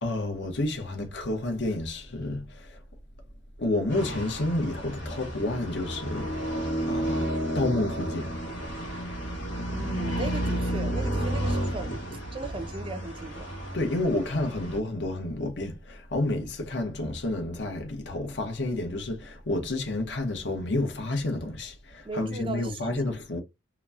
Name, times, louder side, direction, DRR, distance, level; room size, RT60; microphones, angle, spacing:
voice 1, 0.0-2.8 3.6-6.4 6.8-7.2 7.5-8.4 13.7-23.4, left 2 dB, 65° left, 0.9 m, -30 dB
sound 1, 3.9-14.8, equal, 85° left, 1.1 m, -31 dB
voice 2, 9.7-12.0 12.3-13.5 22.0-23.0, right 3 dB, 30° right, 0.4 m, -37 dB
2.9 x 2.2 x 2.4 m
head